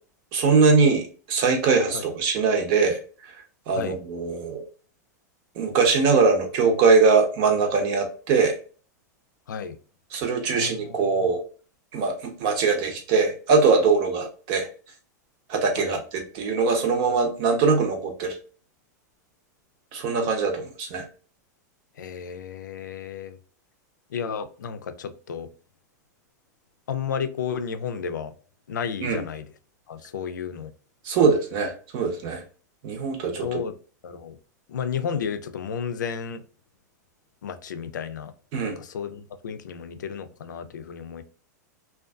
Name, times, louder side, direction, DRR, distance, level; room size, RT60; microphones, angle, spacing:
voice 1, 0.3-3.0 3.7-4.6 5.6-8.5 10.1-11.4 11.9-14.7 15.5-18.4 19.9-21.1 29.0-29.2 31.0-32.4 32.8-33.6 38.5-38.8, right 4 dB, 50° right, 0.8 m, -22 dB
voice 2, 10.5-11.1 15.8-16.0 22.0-23.4 24.1-25.5 26.9-28.3 28.7-29.5 29.9-30.7 33.4-33.7 34.0-34.4 34.7-36.4 37.4-41.2, left 7 dB, 90° left, 0.4 m, -32 dB
2.5 x 2.3 x 2.3 m
hypercardioid pair, 115°, 10 cm